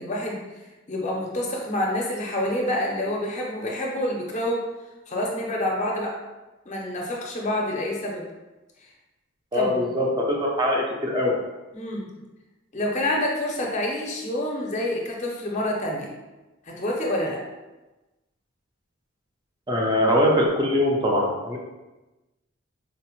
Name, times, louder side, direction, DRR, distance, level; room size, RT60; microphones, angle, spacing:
voice 1, 0.0-4.6 5.1-6.1 6.7-8.2 9.5-9.9 11.7-12.2 12.7-16.1 16.6-17.4, left 1 dB, 35° left, -1 dB, 0.5 m, -27 dB
voice 2, 9.5-11.3 19.7-21.6, left 1 dB, 20° right, -2 dB, 0.4 m, -22 dB
3.9 x 2.0 x 2.9 m, 1.1 s
head